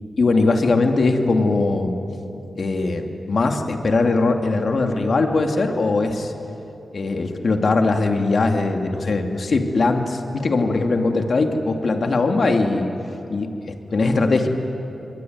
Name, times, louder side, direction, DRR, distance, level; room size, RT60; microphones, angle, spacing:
voice 1, 0.2-2.0 2.6-6.3 6.9-12.9 13.3-14.5, left 3 dB, 65° left, 4 dB, 2.6 m, -20 dB
27.0 x 22.5 x 9.5 m, 2.9 s
cardioid pair, 45°, 0 cm